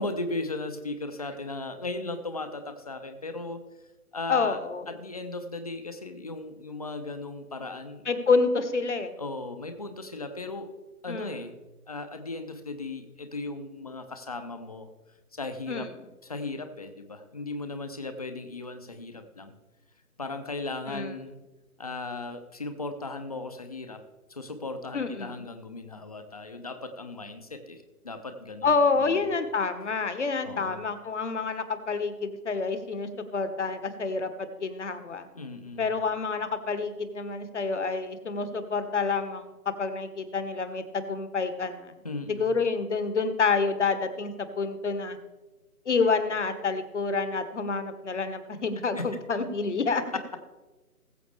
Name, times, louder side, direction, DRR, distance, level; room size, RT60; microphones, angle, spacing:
voice 1, 0.0-3.6 4.1-4.6 4.9-8.1 9.2-10.7 11.0-11.6 11.9-14.9 15.3-15.9 16.2-19.5 20.2-21.4 21.8-24.0 24.3-29.3 30.4-30.8 35.3-35.9 42.0-42.5 49.0-49.1 50.1-50.2, left 2 dB, 25° left, 8 dB, 0.8 m, -36 dB
voice 2, 4.3-4.8 8.0-9.1 11.1-11.4 15.7-15.9 20.9-21.1 24.9-25.5 28.6-35.3 35.8-41.9 42.4-45.2 45.8-50.0, left 4 dB, 50° left, 10 dB, 1.4 m, -28 dB
20.0 x 7.8 x 3.4 m, 1.2 s
figure-of-eight pair, 150°, 46 cm